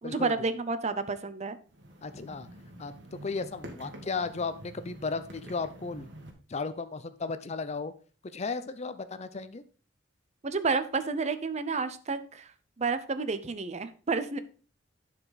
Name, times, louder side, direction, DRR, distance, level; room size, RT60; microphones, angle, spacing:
voice 1, 0.0-1.6 10.4-12.5 12.8-14.4, right 4 dB, 35° right, 12 dB, 0.6 m, -30 dB
sound 1, 1.7-6.3, right 1 dB, 70° right, 1.9 m, -47 dB
voice 2, 2.0-2.5 2.8-2.9 3.2-6.1 6.5-7.9 8.3-9.6, left 4 dB, 35° left, 12 dB, 0.6 m, -35 dB
11.0 x 4.7 x 4.0 m, 0.38 s
head